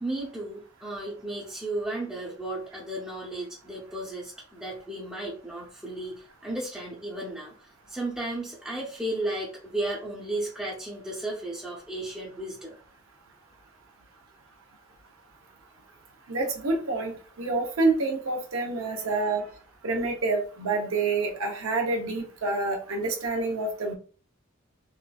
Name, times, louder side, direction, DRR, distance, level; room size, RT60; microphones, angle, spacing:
voice 1, 0.0-12.7 19.0-19.5, right 1 dB, 5° right, -5 dB, 0.6 m, -34 dB
voice 2, 16.3-19.4 19.8-23.9, right 3 dB, 85° right, 1 dB, 0.8 m, -27 dB
3.6 x 2.5 x 2.3 m, 0.40 s
head